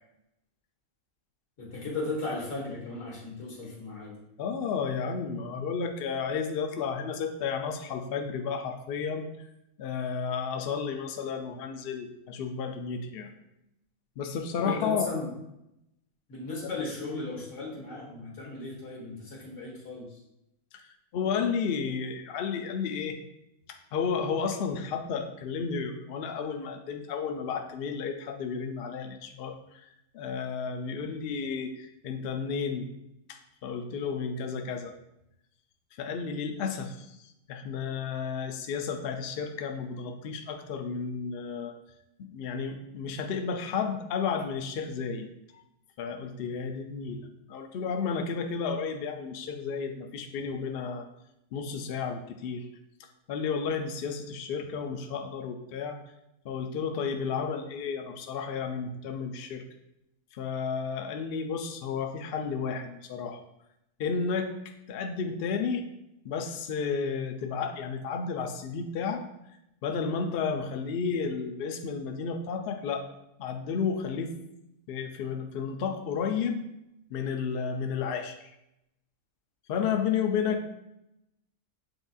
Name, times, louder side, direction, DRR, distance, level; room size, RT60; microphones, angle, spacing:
voice 1, 1.6-4.2 14.6-15.3 16.3-20.2, left 3 dB, 60° left, -4 dB, 1.6 m, -36 dB
voice 2, 4.4-9.3 9.8-13.3 14.2-15.1 20.7-20.9 21.1-23.2 23.9-29.6 30.1-32.9 33.3-34.9 36.0-37.2 37.5-41.7 42.2-45.3 45.5-45.6 46.0-51.1 51.5-52.7 53.3-56.0 56.4-59.6 60.4-63.4 64.0-65.8 66.2-69.2 69.8-73.1 73.4-74.3 74.9-76.6 77.1-78.4 79.7-80.7, left 6 dB, 90° left, 6 dB, 0.5 m, -32 dB
7.6 x 2.6 x 2.4 m, 0.84 s
omnidirectional pair, 1.5 m